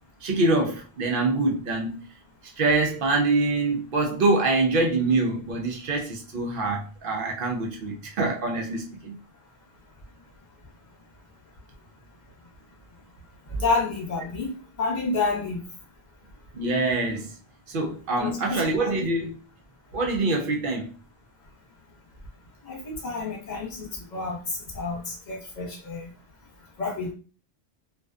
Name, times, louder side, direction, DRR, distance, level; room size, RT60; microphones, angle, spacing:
voice 1, 0.2-2.1 2.4-9.2 16.5-17.3 17.7-19.4 19.9-20.9, right 2 dB, 60° right, 0.7 m, -25 dB
voice 2, 13.5-14.5 14.8-15.6 18.2-18.7 22.7-24.4 24.7-26.1 26.8-27.1, left 3 dB, 45° left, 0.9 m, -29 dB
2.5 x 2.2 x 2.3 m
omnidirectional pair, 1.1 m